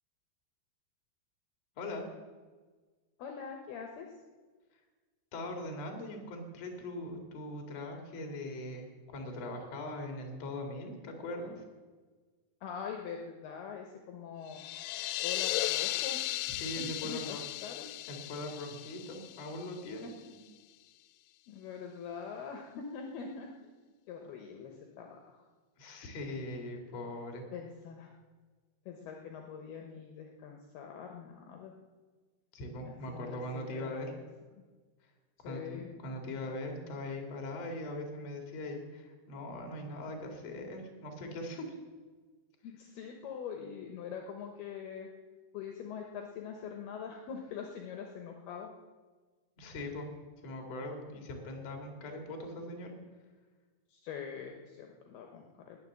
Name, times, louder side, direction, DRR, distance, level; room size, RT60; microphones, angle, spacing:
voice 1, 1.8-2.1 5.3-11.6 16.5-17.4 18.0-20.4 25.8-27.4 32.5-34.1 35.4-41.8 49.6-50.1 50.4-52.9, left 1 dB, 45° left, 3 dB, 2.8 m, -41 dB
voice 2, 3.2-4.1 12.6-14.6 15.2-16.2 17.0-17.9 21.5-23.5 24.1-25.4 27.5-28.1 28.9-31.7 32.8-34.0 34.6-34.7 35.4-35.9 42.6-45.1 45.5-48.7 53.9-55.8, left 6 dB, 70° left, 3 dB, 2.8 m, -43 dB
sound 1, 14.5-20.1, left 16 dB, 90° left, 2.8 m, -36 dB
19.5 x 7.0 x 7.4 m, 1.4 s
omnidirectional pair, 5.1 m